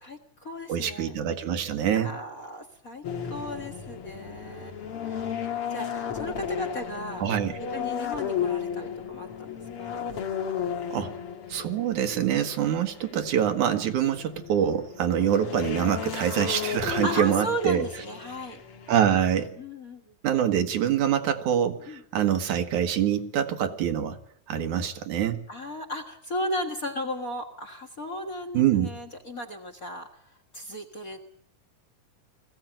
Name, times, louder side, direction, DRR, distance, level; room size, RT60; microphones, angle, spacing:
voice 1, 0.0-1.1 1.9-7.2 7.7-9.5 9.8-10.0 15.3-15.5 17.0-18.6 19.6-20.1 21.9-22.0 25.5-31.2, equal, 40° left, 4 dB, 1.5 m, -36 dB
voice 2, 0.7-2.1 7.2-7.6 10.9-11.1 11.5-17.9 18.9-19.6 20.2-24.2 24.5-25.4 28.5-29.0, right 9 dB, 90° right, 6 dB, 2.9 m, -25 dB
sound 1, 3.0-19.5, left 8 dB, 55° left, 2.3 m, -34 dB
20.5 x 15.5 x 9.0 m, 0.68 s
omnidirectional pair, 3.3 m